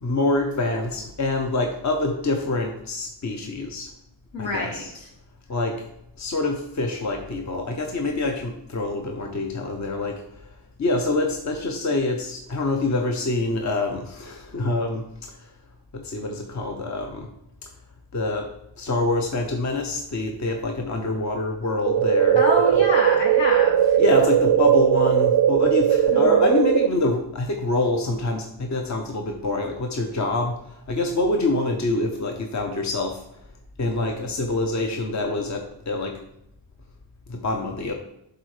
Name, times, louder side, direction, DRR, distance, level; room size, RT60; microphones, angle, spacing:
voice 1, 0.0-3.9 4.4-5.0 5.5-5.8 6.2-10.2 10.8-15.5 15.9-17.3 18.1-18.5 18.8-22.9 24.0-30.5 30.9-33.2 33.8-36.2 37.3-37.9, left 2 dB, 40° left, 3 dB, 0.9 m, -26 dB
voice 2, 4.3-5.1 22.3-24.0 26.1-26.5, left 1 dB, 80° left, -2 dB, 2.4 m, -27 dB
sound 1, 21.9-26.9, right 10 dB, 60° right, 0.5 m, -18 dB
11.0 x 3.9 x 3.2 m, 0.80 s
wide cardioid pair, 85°, 44 cm